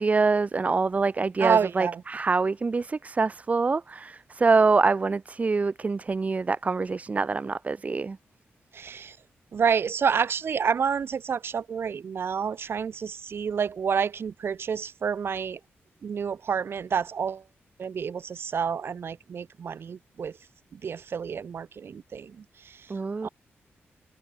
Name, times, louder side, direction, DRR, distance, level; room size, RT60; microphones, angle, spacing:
voice 1, 0.0-8.2 22.9-23.3, right 4 dB, 30° right, 1.4 m, -25 dB
voice 2, 1.4-2.0 8.7-9.2 9.5-15.6 16.0-17.4 17.8-20.3 20.7-22.3 23.2-23.3, right 6 dB, 60° right, 3.4 m, -28 dB
wide cardioid pair, 125°, 5 cm